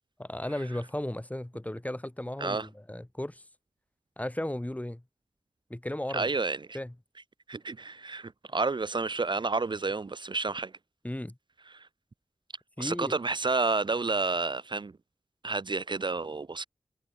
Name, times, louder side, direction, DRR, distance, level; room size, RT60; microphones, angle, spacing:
voice 1, 0.2-3.4 4.2-5.0 5.7-6.3 6.7-6.9 11.0-11.4 12.8-13.2, left 1 dB, 15° left, 1.9 m, -35 dB
voice 2, 2.4-2.7 6.1-6.8 7.5-10.7 11.7-11.9 12.8-15.0 15.4-16.6, right 3 dB, 45° right, 0.7 m, -30 dB
cardioid pair, 50°, 11 cm